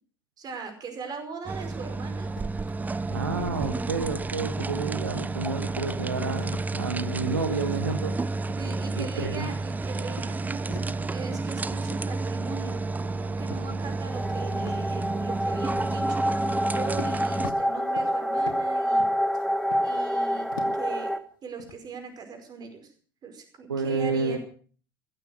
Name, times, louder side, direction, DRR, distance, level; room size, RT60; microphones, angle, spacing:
voice 1, 0.4-2.3 8.6-12.8 13.2-19.1 19.8-21.1 21.4-22.9 23.2-24.4, right 4 dB, 35° right, 6 dB, 5.1 m, -39 dB
sound 1, 1.5-17.5, right 3 dB, 15° right, 0.6 m, -31 dB
sound 2, 2.4-2.7 3.0-3.3 3.8-4.2 4.6-4.9 5.2-5.5 5.7-6.7 7.1-7.4 7.7-8.1 8.4-9.8 10.1-10.4 10.7-11.5 11.8-12.8 13.5-13.7 14.2-14.3 14.7-14.9 15.7-16.0 16.5-16.7 16.9-20.1 20.5-20.9 21.3-22.2, left 6 dB, 70° left, 2.5 m, -44 dB
voice 2, 3.1-8.1 9.0-9.5 23.7-24.4, right 4 dB, 80° right, 6 dB, 1.5 m, -30 dB
sound 3, 14.1-21.2, equal, ahead, 1.6 m, -27 dB
15.5 x 12.5 x 6.3 m, 0.43 s
figure-of-eight pair, 70°, 11 cm